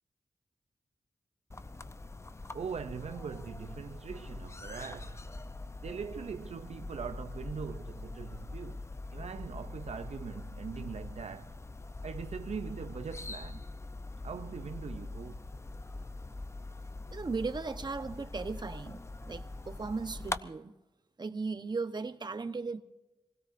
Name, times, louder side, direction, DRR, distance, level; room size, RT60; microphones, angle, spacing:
sound 1, 1.5-20.4, left 2 dB, 25° left, 0.6 m, -43 dB
voice 1, 2.5-5.3 5.8-8.9 9.1-11.6 12.0-13.6 14.2-15.4, right 6 dB, 65° right, 0.5 m, -41 dB
voice 2, 17.1-20.7 21.2-22.8, right 4 dB, 40° right, 1.0 m, -37 dB
26.5 x 17.0 x 2.6 m
wide cardioid pair, 85°, 12 cm